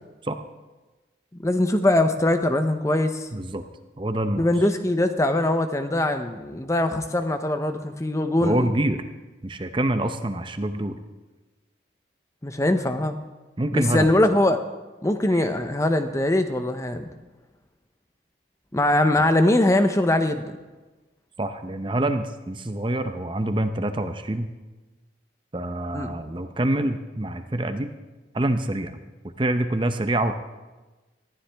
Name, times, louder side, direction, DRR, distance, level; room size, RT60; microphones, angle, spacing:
voice 1, 1.4-3.3 4.4-8.7 12.4-13.2 13.7-14.6 15.0-17.1 18.7-20.5 25.9-26.1, left 1 dB, 15° left, 8 dB, 0.7 m, -22 dB
voice 2, 3.3-3.6 4.0-4.5 8.4-9.0 9.4-11.0 13.6-14.1 15.3-15.5 19.2-19.3 21.4-24.5 25.5-27.9 28.3-29.0 29.2-30.3, right 1 dB, 25° right, 9 dB, 0.7 m, -26 dB
19.5 x 14.0 x 3.4 m, 1.2 s
head